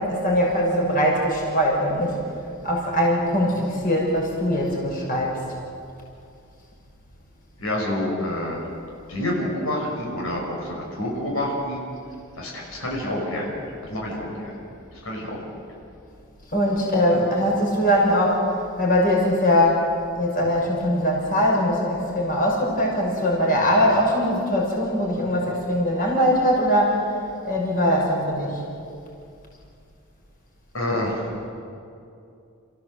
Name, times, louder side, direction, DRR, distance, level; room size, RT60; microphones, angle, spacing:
voice 1, 0.0-2.2 2.6-5.4 16.5-18.5 18.8-19.9 20.1-27.1 27.4-28.6, equal, 45° left, -2 dB, 5.9 m, -21 dB
voice 2, 7.6-8.7 9.1-11.8 12.4-14.6 14.9-15.4 30.7-31.3, left 1 dB, 90° left, -2 dB, 5.5 m, -28 dB
29.5 x 15.5 x 7.8 m, 2.5 s
head